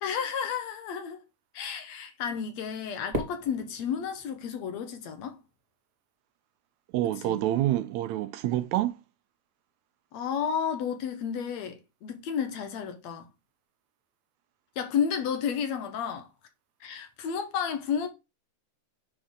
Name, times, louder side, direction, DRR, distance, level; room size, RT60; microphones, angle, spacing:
voice 1, 0.0-1.2 1.5-5.4 7.0-7.4 10.1-13.3 14.8-16.3 16.8-18.1, left 7 dB, 70° left, 2.2 m, -32 dB
Fireworks, 3.1-5.4, equal, 20° right, 1.2 m, -38 dB
voice 2, 6.9-9.0, right 14 dB, 80° right, 1.8 m, -27 dB
9.7 x 4.5 x 3.7 m
omnidirectional pair, 3.4 m